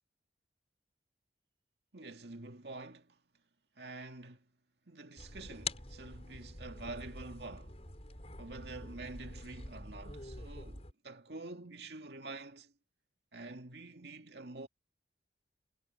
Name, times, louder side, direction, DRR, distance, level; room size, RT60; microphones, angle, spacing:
voice 1, 1.9-3.2 3.8-4.4 4.9-7.8 8.4-12.7 13.3-14.7, right 3 dB, 70° right, 2.1 m, -47 dB
sound 1, 5.2-10.9, left 3 dB, 35° left, 5.9 m, -46 dB
head